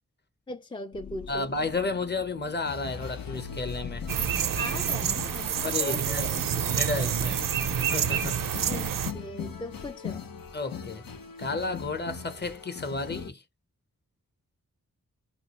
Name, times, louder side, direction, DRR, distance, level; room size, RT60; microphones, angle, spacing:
voice 1, 0.5-1.5 4.6-6.5 8.7-10.3, left 2 dB, 15° left, 0.3 m, -39 dB
sound 1, 0.9-9.2, left 5 dB, 60° left, 0.6 m, -44 dB
voice 2, 1.3-4.1 5.6-7.4 7.8-8.4 10.5-11.0 11.4-13.4, left 3 dB, 30° left, 0.8 m, -32 dB
sound 2, 2.6-13.3, left 6 dB, 90° left, 0.8 m, -40 dB
sound 3, 4.1-9.1, right 9 dB, 70° right, 0.5 m, -28 dB
2.5 x 2.3 x 2.9 m
wide cardioid pair, 60°, 34 cm